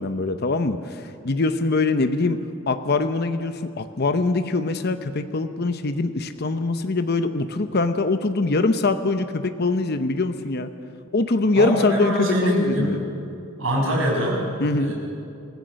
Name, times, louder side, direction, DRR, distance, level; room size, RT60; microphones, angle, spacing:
voice 1, 0.0-2.4 2.7-10.7 11.1-13.0 14.6-14.9, left 3 dB, 50° left, 9 dB, 0.8 m, -23 dB
voice 2, 11.5-13.0 13.6-14.5 14.8-14.9, equal, 70° right, -2 dB, 6.4 m, -23 dB
26.5 x 15.5 x 6.4 m, 2.7 s
head